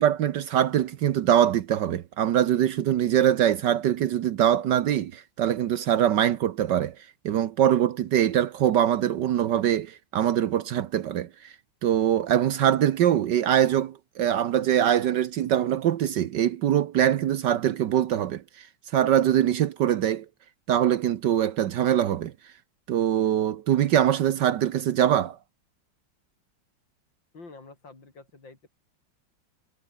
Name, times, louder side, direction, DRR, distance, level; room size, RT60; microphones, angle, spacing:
voice 1, 0.0-6.9 7.2-11.5 11.8-18.7 18.9-20.2 20.7-22.3 22.9-25.4, right 10 dB, 70° right, 1.5 m, -23 dB
voice 2, 27.3-28.7, left 3 dB, 75° left, 5.6 m, -48 dB
omnidirectional pair, 2.0 m